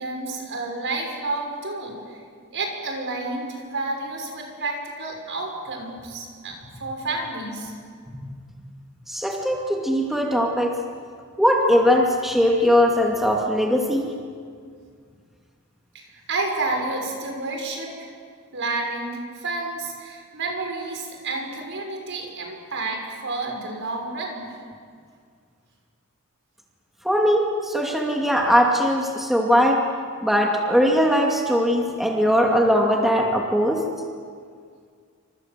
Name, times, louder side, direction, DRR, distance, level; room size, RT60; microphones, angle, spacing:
voice 1, 0.0-2.0 2.5-6.5 6.8-7.7 15.9-18.1 18.5-24.5, right 2 dB, 55° right, 2 dB, 6.3 m, -30 dB
voice 2, 9.1-10.8 11.4-14.1 27.0-29.8 30.2-33.8, equal, ahead, -1 dB, 2.4 m, -20 dB
29.0 x 26.0 x 7.6 m, 2.1 s
head